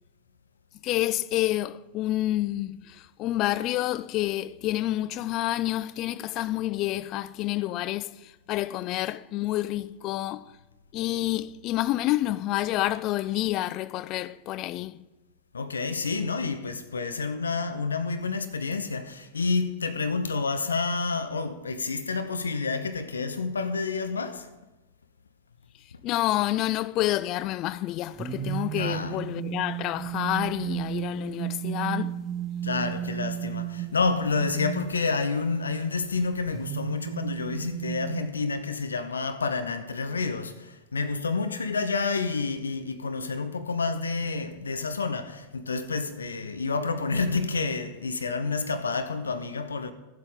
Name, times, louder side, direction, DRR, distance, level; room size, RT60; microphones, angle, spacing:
voice 1, 0.8-10.5 10.9-15.0 26.0-32.2, left 15 dB, 40° left, 0.4 m, -28 dB
voice 2, 15.5-24.5 25.9-26.0 28.7-29.2 32.6-49.9, left 4 dB, 75° left, 0.7 m, -29 dB
sound 1, 28.1-35.6 36.5-38.2, right 11 dB, 25° right, 1.0 m, -33 dB
15.5 x 7.9 x 3.7 m
figure-of-eight pair, 90°, 0 cm